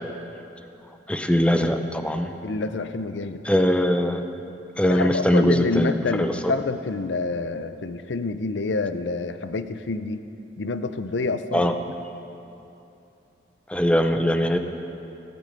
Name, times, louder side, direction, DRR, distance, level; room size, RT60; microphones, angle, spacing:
voice 1, 1.1-2.3 3.4-4.2 4.8-6.5 11.5-11.7 13.7-14.6, equal, 5° left, 6 dB, 0.7 m, -21 dB
voice 2, 2.4-3.4 4.9-10.2 10.6-11.7, left 3 dB, 80° left, 11 dB, 0.6 m, -27 dB
15.5 x 14.5 x 5.2 m, 2.8 s
head